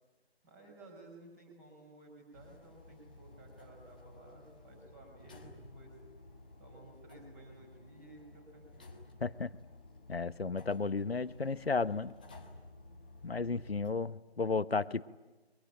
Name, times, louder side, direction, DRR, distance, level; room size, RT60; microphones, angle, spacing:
voice 1, 0.4-5.9 6.6-9.0, right 2 dB, 15° right, 3 dB, 5.6 m, -56 dB
sound 1, 2.3-13.9, left 2 dB, 10° left, 0.9 m, -55 dB
voice 2, 9.2-9.5 10.1-12.1 13.2-15.0, left 4 dB, 70° left, 15 dB, 1.2 m, -33 dB
28.5 x 23.5 x 8.9 m, 1.1 s
figure-of-eight pair, 160°, 32 cm